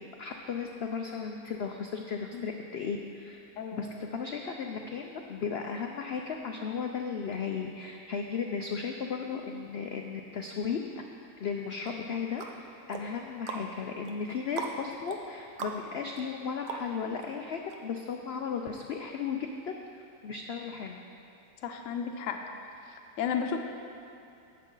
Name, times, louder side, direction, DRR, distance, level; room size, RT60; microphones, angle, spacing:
voice 1, 0.0-3.4 3.7-11.0 11.4-19.4 19.6-19.7 20.2-21.0, left 6 dB, 80° left, 3 dB, 0.5 m, -35 dB
voice 2, 3.6-3.9 21.6-22.4 23.2-23.6, left 7 dB, 60° left, 4 dB, 1.0 m, -33 dB
sound 1, 11.9-17.3 17.7-17.8, right 4 dB, 90° right, 1.4 m, -41 dB
12.5 x 8.5 x 3.8 m, 2.5 s
omnidirectional pair, 1.7 m